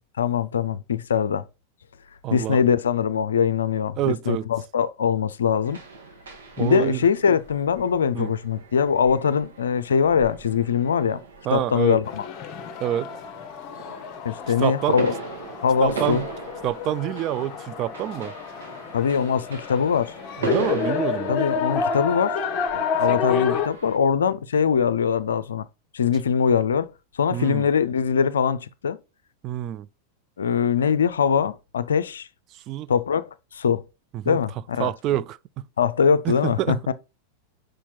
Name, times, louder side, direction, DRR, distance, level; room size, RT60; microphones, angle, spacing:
voice 1, 0.2-1.5 2.3-5.8 6.6-11.2 11.5-12.2 14.2-15.1 15.6-16.2 18.9-20.1 21.3-22.4 22.7-25.7 25.9-26.9 27.2-29.0 30.4-32.3 32.9-33.2 33.5-33.8 34.3-34.9 35.8-36.9, left 7 dB, 65° left, 0.4 m, -22 dB
voice 2, 2.2-2.6 4.0-4.5 6.6-7.0 8.1-8.3 11.4-12.0 12.8-13.1 14.6-15.0 15.8-16.3 16.6-18.3 20.4-21.4 27.3-27.7 29.4-29.9 32.5-32.9 34.1-34.4 34.8-35.7 36.2-36.8, right 13 dB, 35° right, 0.3 m, -27 dB
sound 1, 5.6-24.0, right 4 dB, 65° right, 2.4 m, -38 dB
sound 2, 12.0-23.7, left 6 dB, 35° left, 0.8 m, -29 dB
5.7 x 5.1 x 4.3 m
figure-of-eight pair, 90°, 0 cm